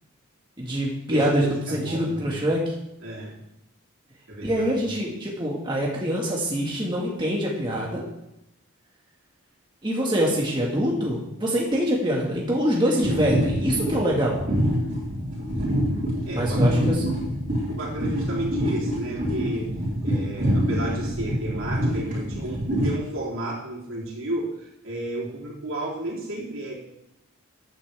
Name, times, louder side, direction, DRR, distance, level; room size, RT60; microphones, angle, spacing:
voice 1, 0.6-2.7 4.4-8.0 9.8-14.4 16.3-17.0, equal, 20° right, -4 dB, 1.8 m, -25 dB
voice 2, 1.1-2.4 3.0-3.4 4.3-4.9 16.2-16.8 17.7-19.7 20.0-26.7, right 1 dB, 70° right, -5 dB, 3.5 m, -32 dB
sound 1, 13.0-22.9, equal, 40° right, 4.7 m, -25 dB
14.0 x 9.4 x 3.5 m, 0.85 s
head